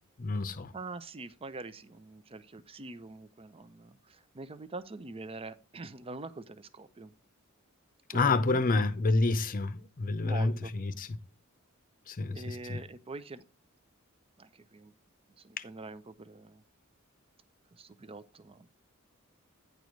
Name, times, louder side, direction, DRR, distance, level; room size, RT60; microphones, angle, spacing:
voice 1, 0.2-0.7 8.1-11.1 12.1-12.8 15.6-15.7, left 3 dB, 40° left, 0.7 m, -29 dB
voice 2, 0.7-7.1 8.1-8.6 10.2-10.7 12.3-13.4 14.4-14.9 15.4-16.6 17.7-18.7, right 3 dB, 25° right, 0.6 m, -44 dB
9.5 x 4.7 x 5.2 m
head